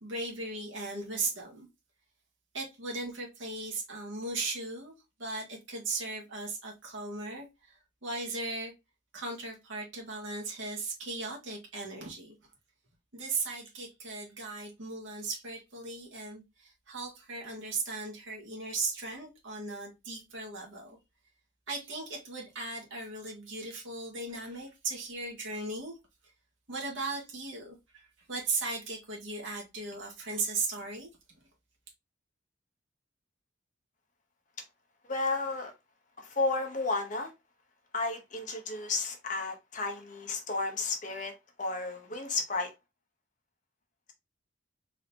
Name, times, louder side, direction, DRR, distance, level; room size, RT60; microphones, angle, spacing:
voice 1, 0.0-1.7 2.5-4.9 5.2-8.7 9.1-12.4 13.1-21.0 21.7-26.0 26.7-31.1, right 3 dB, 75° right, 1.6 m, -37 dB
voice 2, 35.1-35.7 36.2-37.3 37.9-42.7, left 3 dB, 40° left, 0.8 m, -32 dB
3.9 x 2.7 x 3.3 m
head